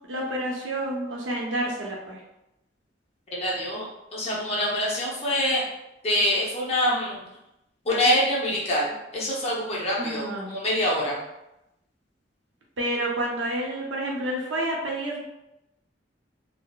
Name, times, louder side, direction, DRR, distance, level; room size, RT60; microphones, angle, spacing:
voice 1, 0.1-2.2 10.0-10.6 12.8-15.2, right 1 dB, 85° right, -2 dB, 0.7 m, -29 dB
voice 2, 3.3-5.6 6.0-7.2 7.8-11.2, left 1 dB, 35° left, -5 dB, 0.7 m, -25 dB
3.8 x 2.0 x 2.3 m, 0.89 s
head